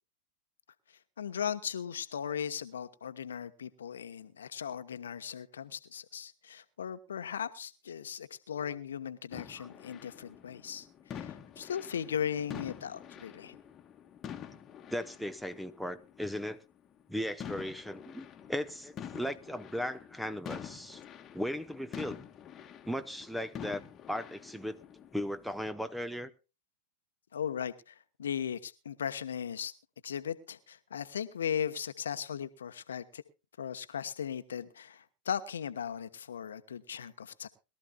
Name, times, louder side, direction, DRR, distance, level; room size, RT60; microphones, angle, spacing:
voice 1, 1.2-13.6 27.3-29.7 30.0-33.2 33.6-37.5, left 8 dB, 75° left, 1.0 m, -37 dB
sound 1, 9.3-16.5 17.0-17.1 17.4-25.7, left 8 dB, 30° left, 1.4 m, -47 dB
voice 2, 14.9-16.6 17.1-21.0 21.3-22.2 22.9-23.8 24.1-24.8 25.1-26.3, equal, ahead, 0.9 m, -37 dB
22.0 x 13.0 x 2.3 m
figure-of-eight pair, 95°, 0 cm